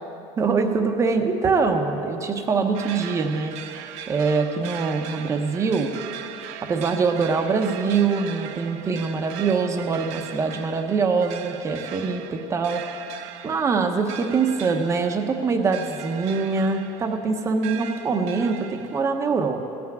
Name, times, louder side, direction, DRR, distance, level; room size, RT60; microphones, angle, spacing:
voice 1, 0.4-3.5 4.1-5.9 6.6-12.8 13.4-19.7, right 4 dB, 20° right, 5 dB, 0.9 m, -23 dB
sound 1, 2.7-19.0, right 10 dB, 60° right, 0.6 m, -39 dB
16.0 x 6.0 x 8.8 m, 2.9 s
cardioid pair, 155°, 13 cm